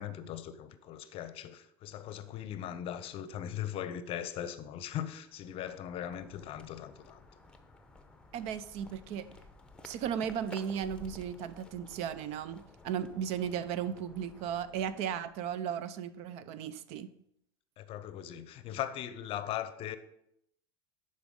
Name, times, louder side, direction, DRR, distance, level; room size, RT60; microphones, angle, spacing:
voice 1, 0.0-7.2 17.8-20.0, left 10 dB, 45° left, 0.6 m, -39 dB
sound 1, 5.2-15.9, left 3 dB, 5° left, 0.8 m, -55 dB
voice 2, 8.3-9.3 9.8-17.1, right 8 dB, 55° right, 0.5 m, -36 dB
11.0 x 4.2 x 3.7 m
hypercardioid pair, 95°, 13 cm